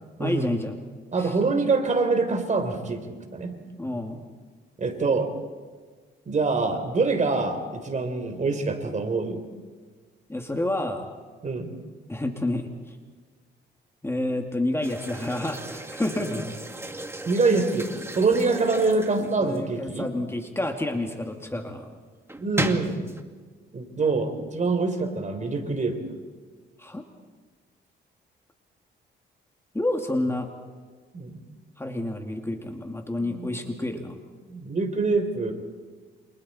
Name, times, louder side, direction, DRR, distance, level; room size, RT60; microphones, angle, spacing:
voice 1, 0.2-0.8 1.2-1.4 3.8-4.3 10.3-11.1 12.1-13.0 14.0-16.5 16.9-17.0 19.2-21.9 22.6-22.8 26.8-27.1 29.7-30.5 31.8-34.2, left 1 dB, 10° left, 4 dB, 2.5 m, -29 dB
voice 2, 1.1-3.6 4.8-5.3 6.3-9.4 11.4-11.8 17.3-20.1 22.4-23.0 23.7-26.2 31.1-31.4 33.2-33.5 34.5-35.5, right 3 dB, 35° right, 6 dB, 3.8 m, -25 dB
sound 1, 14.8-19.8 22.3-23.2, right 1 dB, 10° right, 2.1 m, -35 dB
29.5 x 27.0 x 4.4 m, 1.5 s
cardioid pair, 90°, 20 cm